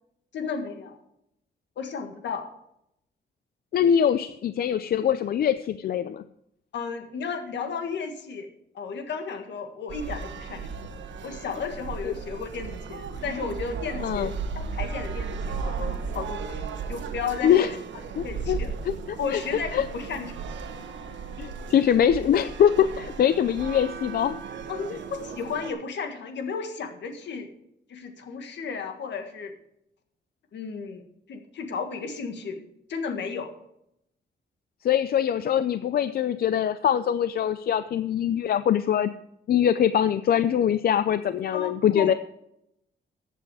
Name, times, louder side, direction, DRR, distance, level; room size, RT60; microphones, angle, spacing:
voice 1, 0.3-1.0 1.8-2.5 6.7-8.5 8.8-10.7 11.2-17.7 18.1-18.7 19.2-20.3 24.7-27.5 27.9-29.5 30.5-31.0 31.3-33.5 41.5-42.1, left 5 dB, 75° left, 6 dB, 1.8 m, -34 dB
voice 2, 3.7-6.2 12.0-12.1 14.0-14.3 17.4-17.7 18.2-18.6 18.8-19.4 19.7-19.9 21.4-24.4 24.9-25.0 34.8-39.1 39.5-42.1, left 9 dB, 55° left, 13 dB, 0.4 m, -23 dB
sound 1, 9.9-25.7, right 5 dB, 85° right, 1.3 m, -35 dB
14.5 x 8.3 x 4.8 m, 0.79 s
wide cardioid pair, 155°, 19 cm